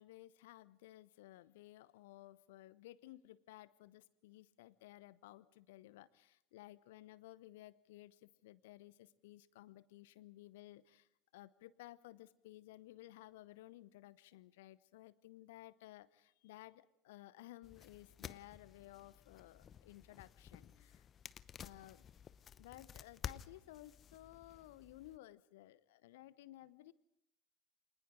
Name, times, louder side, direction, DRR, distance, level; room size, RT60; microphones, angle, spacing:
voice 1, 0.0-21.1 21.6-22.0 22.6-26.9, left 16 dB, 60° left, 19 dB, 0.9 m, -57 dB
sound 1, 17.6-25.2, left 8 dB, 30° left, 0.7 m, -53 dB
29.5 x 25.5 x 3.8 m, 0.79 s
figure-of-eight pair, 75°, 0 cm